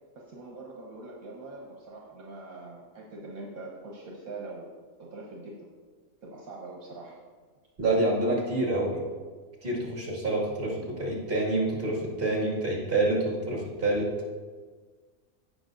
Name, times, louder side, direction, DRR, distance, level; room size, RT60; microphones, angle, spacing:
voice 1, 0.1-4.7 5.0-5.7 6.2-7.2, right 2 dB, 70° right, -2 dB, 1.6 m, -43 dB
voice 2, 7.8-9.0 9.6-14.1, right 2 dB, 40° right, -3 dB, 2.3 m, -27 dB
16.5 x 5.8 x 2.6 m, 1.5 s
omnidirectional pair, 1.5 m